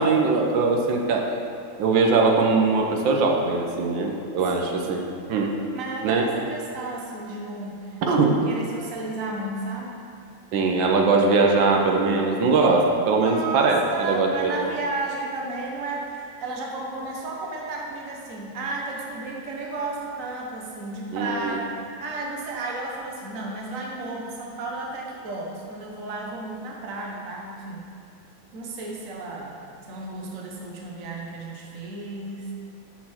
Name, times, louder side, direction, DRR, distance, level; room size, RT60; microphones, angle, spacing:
voice 1, 0.0-1.4 1.8-5.5 6.0-6.3 8.0-8.3 10.5-14.5 21.1-21.6, right 3 dB, 80° right, 1 dB, 1.5 m, -21 dB
voice 2, 4.6-4.9 5.7-10.0 13.1-27.8 28.5-32.5, right 2 dB, 50° right, -2 dB, 1.3 m, -33 dB
12.0 x 4.2 x 4.3 m, 2.4 s
omnidirectional pair, 2.0 m